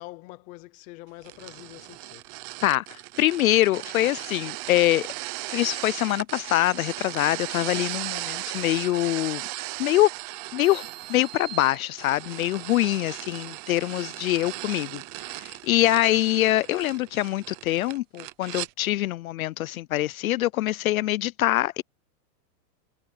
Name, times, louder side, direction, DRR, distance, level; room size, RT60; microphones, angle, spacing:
voice 1, 0.0-2.2 15.8-15.9, left 19 dB, 15° left, 0.6 m, -44 dB
sound 1, 1.2-18.7, right 20 dB, 25° right, 0.8 m, -37 dB
voice 2, 2.6-5.1 5.5-9.4 9.8-10.1 10.5-21.8, left 15 dB, 60° left, 0.5 m, -24 dB
sound 2, 10.6-12.5, right 10 dB, 70° right, 2.2 m, -43 dB
supercardioid pair, 165°, 48 cm